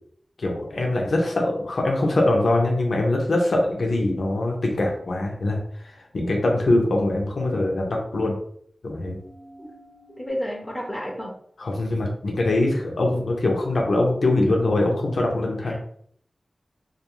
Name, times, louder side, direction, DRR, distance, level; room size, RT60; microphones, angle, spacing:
voice 1, 0.4-8.4 8.8-9.2 11.6-15.8, left 2 dB, 80° left, 0 dB, 0.5 m, -23 dB
sound 1, 9.0-10.3, right 1 dB, 90° right, 0.9 m, -49 dB
voice 2, 10.2-11.3 15.6-15.8, equal, 20° left, -2 dB, 0.5 m, -31 dB
2.3 x 2.3 x 2.9 m, 0.63 s
wide cardioid pair, 75°, 0 cm